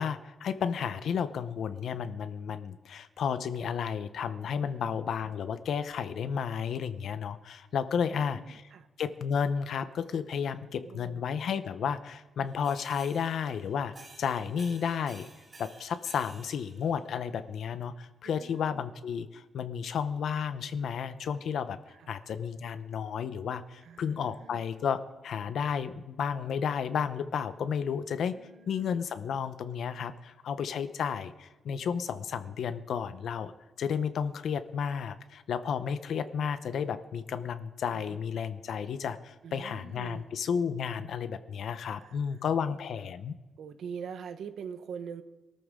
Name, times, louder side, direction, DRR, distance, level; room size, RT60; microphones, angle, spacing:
voice 1, 0.0-8.6 9.0-15.3 15.6-21.8 22.1-28.3 28.7-33.5 33.8-43.3, left 7 dB, 70° left, 11 dB, 0.9 m, -32 dB
voice 2, 4.6-5.1 8.1-8.9 10.6-11.2 18.2-18.9 21.9-22.1 23.8-24.6 28.3-29.0 37.9-38.2 39.4-40.3 42.0-42.2 42.5-42.8 43.6-45.2, right 7 dB, 75° right, 9 dB, 1.0 m, -44 dB
sound 1, 12.5-17.3, right 2 dB, 35° right, 5.0 m, -53 dB
23.0 x 13.5 x 3.8 m, 1.1 s
wide cardioid pair, 150°, 0 cm